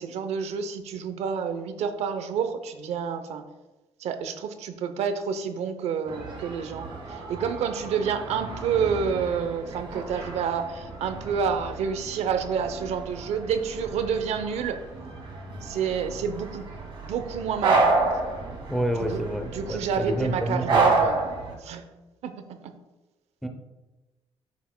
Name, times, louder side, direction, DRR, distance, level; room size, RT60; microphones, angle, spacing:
voice 1, 0.0-3.4 4.0-14.8 15.6-16.6 17.0-17.9 19.1-19.2 19.5-21.3 21.6-21.8 22.2-22.7, right 6 dB, 85° right, 9 dB, 0.7 m, -29 dB
sound 1, 6.1-21.5, right 3 dB, 50° right, 1.7 m, -30 dB
voice 2, 18.7-20.8 23.4-23.5, right 1 dB, ahead, 4 dB, 0.6 m, -28 dB
9.3 x 7.1 x 2.2 m, 1.1 s
cardioid pair, 165°, 11 cm